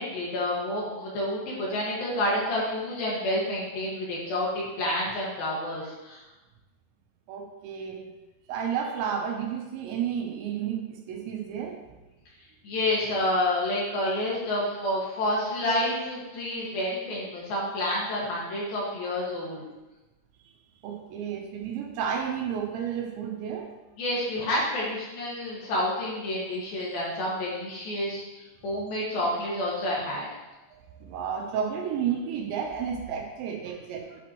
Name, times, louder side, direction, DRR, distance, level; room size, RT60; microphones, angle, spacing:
voice 1, 0.0-6.2 12.6-19.6 24.0-30.3, left 1 dB, 60° left, -5 dB, 3.3 m, -29 dB
voice 2, 7.3-8.1 8.5-11.8 20.8-23.7 25.6-25.7 30.7-34.2, right 8 dB, 80° right, 2 dB, 3.1 m, -32 dB
9.4 x 8.6 x 3.1 m, 1.1 s
omnidirectional pair, 5.4 m